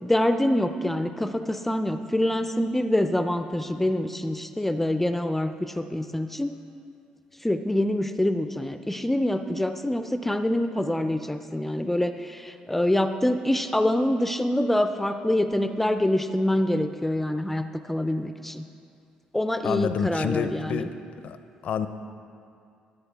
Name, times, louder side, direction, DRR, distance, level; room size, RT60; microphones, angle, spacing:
voice 1, 0.0-6.5 7.4-18.6 19.3-20.9, left 1 dB, 5° left, 9 dB, 0.4 m, -25 dB
voice 2, 19.6-21.0 21.2-21.4 21.6-21.9, left 7 dB, 60° left, 10 dB, 0.5 m, -28 dB
16.5 x 8.0 x 3.5 m, 2.5 s
cardioid pair, 110°, 3 cm